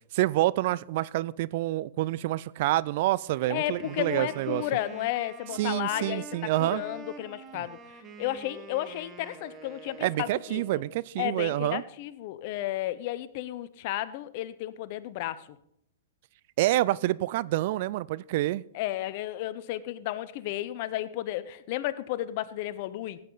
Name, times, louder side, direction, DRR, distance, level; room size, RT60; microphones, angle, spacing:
voice 1, 0.1-4.6 5.6-6.8 10.0-11.8 16.6-18.6, right 16 dB, 55° right, 0.3 m, -27 dB
Wind instrument woodwind instrument, 3.3-11.0, right 4 dB, 25° right, 1.6 m, -46 dB
voice 2, 3.5-6.3 6.6-7.8 8.2-10.8 11.2-15.5 18.7-23.2, left 14 dB, 50° left, 0.7 m, -33 dB
16.0 x 8.8 x 4.0 m
hypercardioid pair, 120°, 0 cm